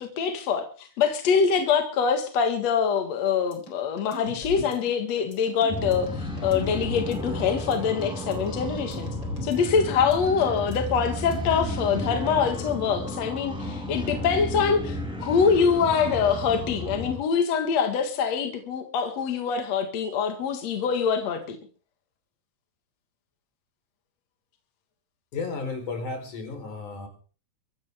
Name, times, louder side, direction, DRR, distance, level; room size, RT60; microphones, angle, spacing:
voice 1, 0.0-9.1 9.4-21.6, left 6 dB, 60° left, 2.8 m, -24 dB
sound 1, 3.5-11.7, left 1 dB, 35° left, 4.9 m, -40 dB
sound 2, 5.7-17.2, left 1 dB, ahead, 5.0 m, -33 dB
voice 2, 25.3-27.1, left 4 dB, 90° left, 5.5 m, -33 dB
23.5 x 14.5 x 3.6 m
omnidirectional pair, 3.4 m